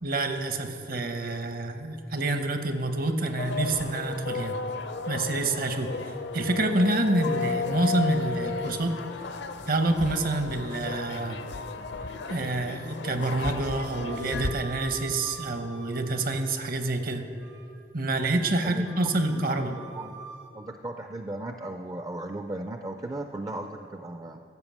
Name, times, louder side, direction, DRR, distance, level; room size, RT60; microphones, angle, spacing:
voice 1, 0.0-4.6 5.1-9.0 9.7-11.4 12.1-17.2 17.9-19.8, right 2 dB, 55° right, 7 dB, 0.9 m, -27 dB
sound 1, 3.4-14.5, left 4 dB, 65° left, 0.6 m, -34 dB
Wind instrument woodwind instrument, 13.7-16.7 17.1-17.8 18.3-20.5, right 7 dB, 70° right, 1.4 m, -46 dB
voice 2, 19.3-20.1 20.5-24.4, right 1 dB, 20° right, 6 dB, 0.4 m, -36 dB
14.0 x 5.5 x 7.3 m, 2.6 s
head